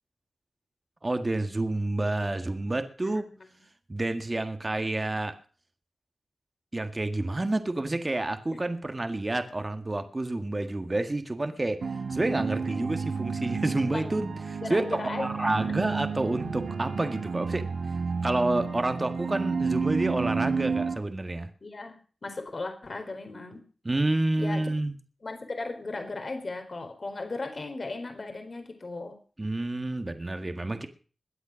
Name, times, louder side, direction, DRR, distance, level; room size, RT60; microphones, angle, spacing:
voice 1, 1.0-3.3 3.9-5.4 6.7-11.8 12.1-17.7 18.2-21.5 23.9-24.9 29.4-30.9, right 2 dB, 35° right, 7 dB, 1.8 m, -29 dB
voice 2, 3.0-3.5 8.5-8.6 13.9-14.1 14.6-15.8 21.6-22.0 22.2-23.6 24.4-24.7 25.2-29.2, left 3 dB, 55° left, 6 dB, 4.0 m, -37 dB
sound 1, 11.8-20.9, right 5 dB, 85° right, 3.5 m, -31 dB
21.5 x 8.1 x 6.3 m, 0.40 s
cardioid pair, 50°, 0 cm